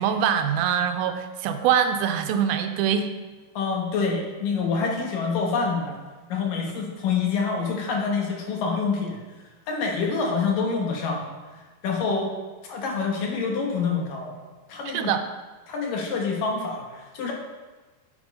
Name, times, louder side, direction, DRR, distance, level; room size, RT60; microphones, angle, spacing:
voice 1, 0.0-3.1 14.9-15.2, right 8 dB, 85° right, 7 dB, 2.4 m, -23 dB
voice 2, 3.5-6.0 6.3-9.2 9.7-11.3 11.8-12.3 12.7-14.4 14.7-15.1 15.7-17.3, left 5 dB, 65° left, 0 dB, 2.8 m, -26 dB
8.4 x 7.0 x 5.3 m, 1.3 s
omnidirectional pair, 4.4 m